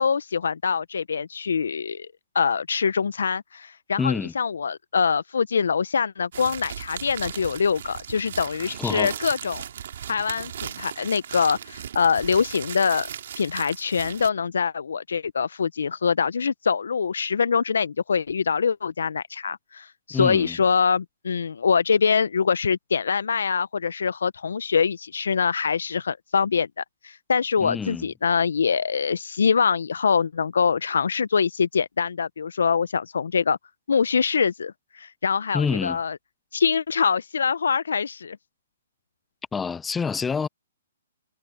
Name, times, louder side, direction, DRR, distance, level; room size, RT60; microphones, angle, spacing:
voice 1, 0.0-2.1 2.3-9.7 10.1-13.1 13.4-33.6 33.9-36.2 36.5-38.4, left 6 dB, 75° left, 0.7 m, -24 dB
voice 2, 4.0-4.3 8.7-9.1 20.1-20.6 27.6-28.1 35.5-36.0 39.5-40.5, left 5 dB, 10° left, 0.5 m, -27 dB
sound 1, 6.3-14.3, right 9 dB, 60° right, 3.1 m, -37 dB
hypercardioid pair, 130°, 0 cm